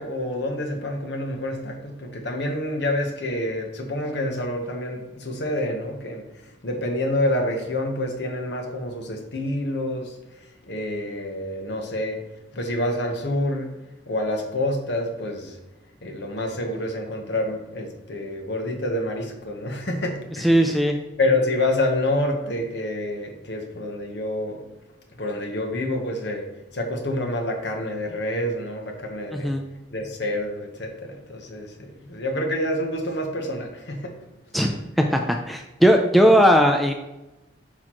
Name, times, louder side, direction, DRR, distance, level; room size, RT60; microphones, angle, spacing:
voice 1, 0.0-12.2 12.5-13.7 14.1-15.6 16.0-20.8 21.2-24.6 25.2-26.5 26.7-29.6 29.9-34.1 34.6-34.7, left 1 dB, 60° left, 3 dB, 1.0 m, -28 dB
voice 2, 20.4-21.0 29.3-29.6 34.5-34.7 35.1-36.9, equal, ahead, 3 dB, 0.3 m, -18 dB
6.4 x 5.8 x 3.0 m, 1.0 s
head